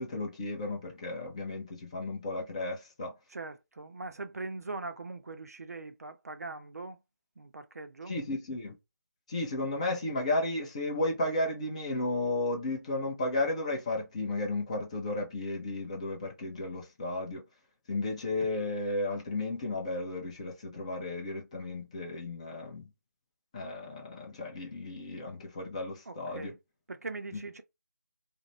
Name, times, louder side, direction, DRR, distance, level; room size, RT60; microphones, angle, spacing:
voice 1, 0.0-3.1 8.1-8.8 9.3-17.4 17.9-22.8 23.5-26.5, left 2 dB, 20° left, 0.6 m, -33 dB
voice 2, 3.3-7.0 7.4-8.1 26.1-26.6 26.9-27.6, right 3 dB, 55° right, 0.5 m, -41 dB
2.5 x 2.1 x 3.1 m
figure-of-eight pair, 160°, 10 cm